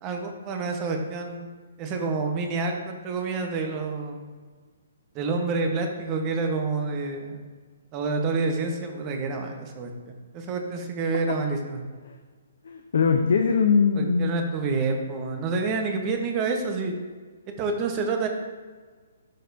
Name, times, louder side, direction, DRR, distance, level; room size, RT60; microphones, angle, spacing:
voice 1, 0.0-1.5 1.8-4.2 5.1-7.4 7.9-11.8 13.9-17.0 17.6-18.3, right 4 dB, 30° right, 4 dB, 1.0 m, -28 dB
voice 2, 12.6-14.4, left 5 dB, 65° left, 4 dB, 0.6 m, -21 dB
11.5 x 4.1 x 2.7 m, 1.5 s
figure-of-eight pair, 130°, 0 cm